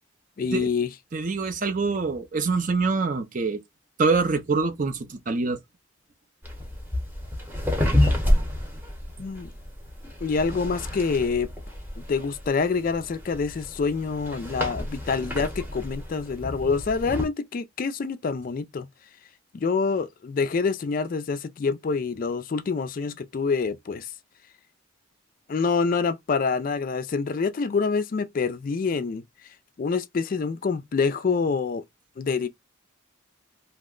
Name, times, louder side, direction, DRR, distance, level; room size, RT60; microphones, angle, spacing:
voice 1, 0.4-0.9 9.2-9.5 10.2-11.5 12.0-18.9 19.5-24.1 25.5-29.2 29.8-31.8 32.2-32.5, left 4 dB, 40° left, 0.3 m, -26 dB
voice 2, 1.1-3.6 4.0-5.6, right 4 dB, 40° right, 0.5 m, -25 dB
sound 1, 6.4-17.3, left 1 dB, 10° right, 0.8 m, -29 dB
2.8 x 2.1 x 3.6 m
head